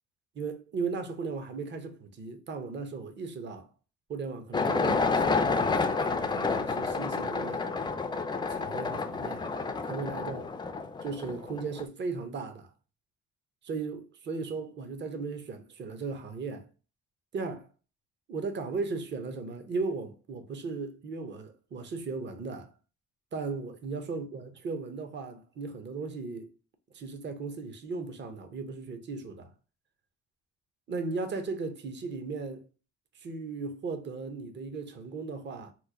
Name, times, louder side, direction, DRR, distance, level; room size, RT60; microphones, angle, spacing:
voice 1, 0.4-3.7 4.1-7.7 8.5-9.5 9.9-10.4 11.0-12.7 13.6-16.7 17.3-17.7 18.3-22.7 23.3-26.5 26.9-29.5 30.9-32.7 33.1-35.7, right 4 dB, 35° right, 0.6 m, -36 dB
sound 1, 4.5-11.8, left 4 dB, 15° left, 0.3 m, -29 dB
2.9 x 2.1 x 3.5 m
cardioid pair, 90°, 30 cm